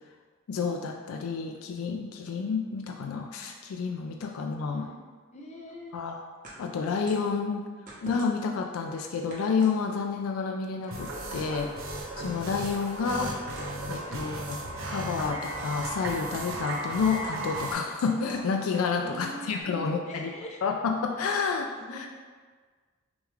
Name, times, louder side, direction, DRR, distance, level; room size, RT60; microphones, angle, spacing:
voice 1, 0.5-4.9 5.9-6.2 6.6-7.7 8.0-11.7 12.2-13.4 13.9-14.6 14.9-20.3 20.6-22.1, left 5 dB, 85° left, 3 dB, 0.3 m, -30 dB
voice 2, 4.7-5.0 5.3-6.0 14.0-14.3 19.0-20.6 21.8-22.1, left 1 dB, 35° left, 0 dB, 0.6 m, -43 dB
sound 1, 6.4-7.3 7.9-8.6 9.3-10.2 11.0-11.4 12.3-12.9 13.5-14.0 14.5-14.7 15.6-16.0 16.3-16.8 17.2-19.1, right 1 dB, 40° right, 1.0 m, -46 dB
sound 2, 10.9-17.7, right 2 dB, 70° right, 0.7 m, -36 dB
sound 3, 11.4-19.6, equal, 15° left, 1.0 m, -50 dB
6.2 x 2.4 x 3.2 m, 1.5 s
head